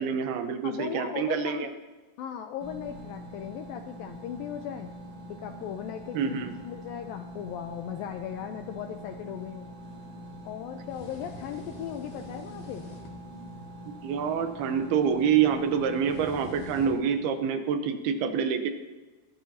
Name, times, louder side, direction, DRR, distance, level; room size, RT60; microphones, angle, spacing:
voice 1, 0.0-1.7 6.1-6.5 14.0-18.7, right 7 dB, 75° right, 7 dB, 2.7 m, -27 dB
voice 2, 0.6-1.7 2.2-4.9 5.3-6.2 6.6-9.7 10.5-12.9, left 9 dB, 80° left, 6 dB, 2.1 m, -37 dB
sound 1, 2.6-17.0, right 1 dB, 40° right, 3.5 m, -44 dB
sound 2, 9.8-17.3, left 2 dB, 60° left, 3.6 m, -50 dB
20.5 x 14.5 x 2.8 m, 1.2 s
omnidirectional pair, 4.8 m